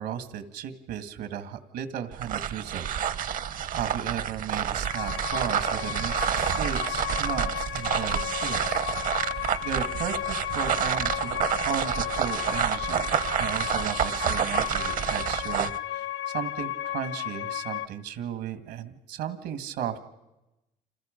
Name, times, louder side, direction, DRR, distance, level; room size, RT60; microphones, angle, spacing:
voice 1, 0.0-2.9 3.7-8.8 9.6-13.1 13.4-20.0, right 9 dB, 80° right, 9 dB, 1.9 m, -35 dB
sound 1, 2.1-15.8, right 9 dB, 55° right, 0.8 m, -29 dB
sound 2, 4.8-17.9, left 13 dB, 80° left, 0.9 m, -33 dB
28.5 x 28.0 x 5.2 m, 0.99 s
cardioid pair, 110°, 17 cm